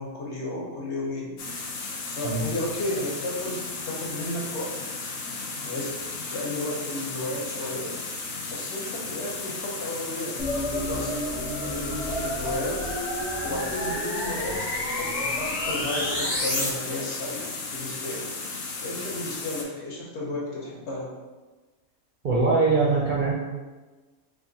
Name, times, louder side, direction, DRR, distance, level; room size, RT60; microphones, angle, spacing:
voice 1, 0.0-1.4 2.0-4.7 5.5-7.9 8.5-12.8 13.4-18.3 18.8-21.1, left 1 dB, 60° left, -4 dB, 1.1 m, -33 dB
sound 1, 1.4-19.6, left 3 dB, 85° left, 1.0 m, -35 dB
sound 2, 10.4-16.7, left 1 dB, 40° left, 0.6 m, -30 dB
voice 2, 22.2-23.3, right 3 dB, 60° right, -4 dB, 0.5 m, -22 dB
2.9 x 2.5 x 3.9 m, 1.3 s
omnidirectional pair, 1.4 m